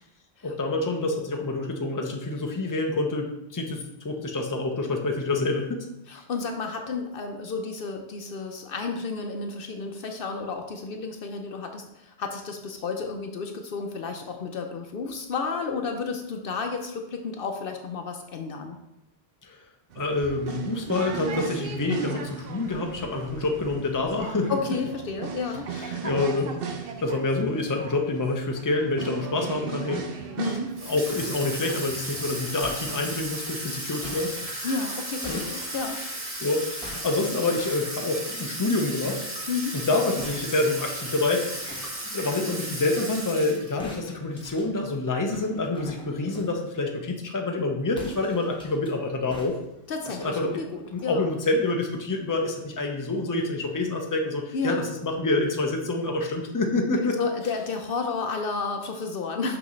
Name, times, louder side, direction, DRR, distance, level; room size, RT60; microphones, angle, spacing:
voice 1, 0.4-5.8 19.4-19.6 20.0-24.8 25.7-30.1 30.4-30.6 30.9-34.8 35.3-35.5 36.1-39.2 39.7-41.7 42.1-49.6 50.2-50.6 50.9-57.2, left 2 dB, 20° left, 2 dB, 0.7 m, -27 dB
voice 2, 6.1-18.8 24.5-25.7 30.4-30.7 34.6-36.0 39.5-39.8 49.9-51.3 54.5-54.9 57.2-59.6, left 4 dB, 65° left, 4 dB, 0.8 m, -31 dB
sound 1, 19.9-33.0, right 6 dB, 65° right, 0.9 m, -37 dB
Water tap faucet / Sink (filling or washing), 30.8-43.9, right 1 dB, 35° right, 1.3 m, -35 dB
sound 2, 32.6-36.5 36.8-38.0 40.2-43.2 43.8-46.6 47.9-48.9 49.3-51.1, left 1 dB, 5° left, 1.2 m, -45 dB
6.0 x 5.9 x 3.1 m, 0.86 s
omnidirectional pair, 1.1 m